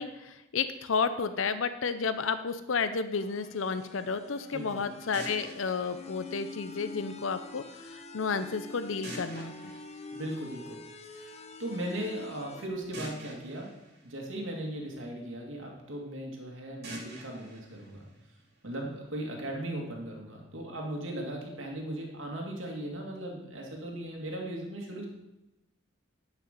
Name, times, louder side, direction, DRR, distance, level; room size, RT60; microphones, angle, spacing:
voice 1, 0.0-9.7, left 5 dB, 70° left, 11 dB, 0.6 m, -32 dB
sound 1, 3.1-12.7, left 3 dB, 30° left, 0.8 m, -46 dB
voice 2, 4.5-4.8 10.1-13.7 14.0-18.1 18.6-25.1, right 1 dB, 65° right, 0 dB, 2.2 m, -38 dB
sound 2, 5.1-7.1 9.0-11.0 12.9-15.1 16.8-18.9, right 1 dB, 50° right, 2.6 m, -47 dB
11.0 x 5.8 x 6.7 m, 0.94 s
head